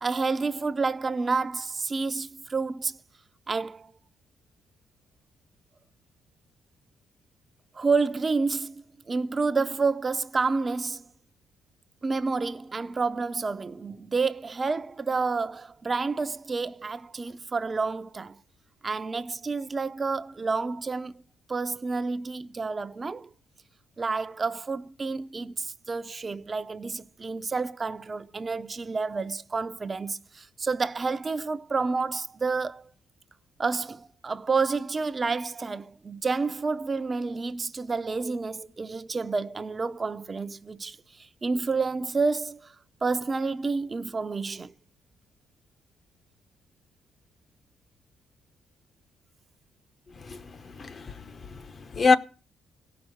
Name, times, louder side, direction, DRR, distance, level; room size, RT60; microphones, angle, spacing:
voice 1, 0.0-3.0 3.5-3.9 7.7-11.1 12.0-18.4 18.8-21.1 21.5-23.3 24.0-32.9 33.6-42.7 43.0-44.7, right 4 dB, 30° right, 0.6 m, -29 dB
voice 2, 50.2-52.2, left 4 dB, 40° left, 0.9 m, -26 dB
17.0 x 5.9 x 7.8 m
cardioid pair, 90°, 0 cm